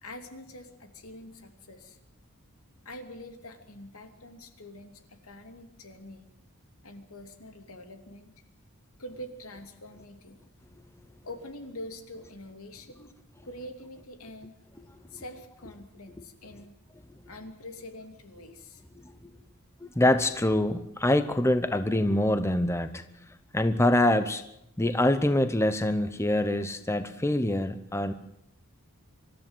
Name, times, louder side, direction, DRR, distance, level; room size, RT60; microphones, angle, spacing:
voice 1, 0.0-2.0 2.8-6.3 6.8-8.3 9.0-10.4 11.2-13.1 13.4-14.6 15.1-16.8 17.2-18.8, left 1 dB, 75° left, 6 dB, 2.9 m, -45 dB
voice 2, 19.8-23.0 23.5-24.4 24.8-28.1, left 1 dB, 10° left, 10 dB, 0.8 m, -25 dB
25.0 x 13.5 x 9.0 m, 0.81 s
head